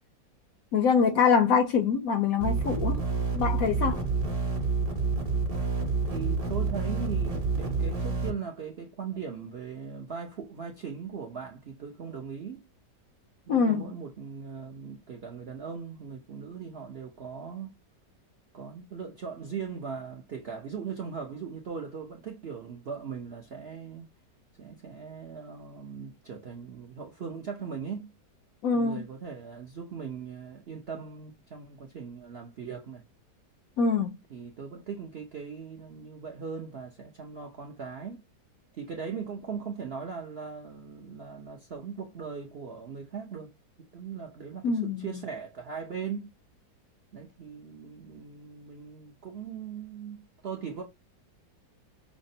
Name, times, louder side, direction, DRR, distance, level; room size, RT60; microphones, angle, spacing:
voice 1, 0.7-3.0 3.3-4.0 13.5-13.9 28.6-29.0 33.8-34.2 44.6-45.1, left 5 dB, 70° left, 0.8 m, -24 dB
sound 1, 2.4-8.3, right 4 dB, 30° right, 0.8 m, -28 dB
voice 2, 6.1-12.7 13.5-17.8 18.5-24.1 24.6-28.1 28.7-33.0 34.3-38.2 38.7-43.5 43.8-46.3 47.1-50.8, right 6 dB, 65° right, 0.6 m, -39 dB
5.7 x 2.1 x 2.6 m
omnidirectional pair, 1.9 m